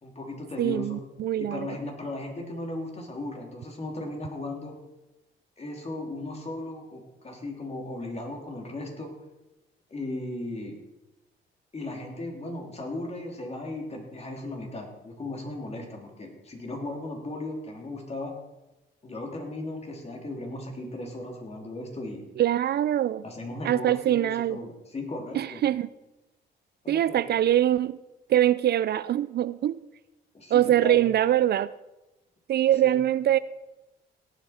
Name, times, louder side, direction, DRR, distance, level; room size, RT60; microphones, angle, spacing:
voice 1, 0.0-1.0 1.4-4.7 5.6-9.1 9.9-10.8 11.7-18.3 19.0-22.2 23.2-25.6 26.8-27.2 30.3-31.1 32.8-33.0, left 2 dB, 30° left, 3.0 m, -36 dB
voice 2, 0.6-1.8 22.4-23.2 23.6-24.6 25.4-25.9 26.9-28.0 28.3-29.8 30.5-31.7 32.5-33.4, right 12 dB, 55° right, 0.4 m, -23 dB
17.5 x 8.2 x 4.3 m
cardioid pair, 90°, 20 cm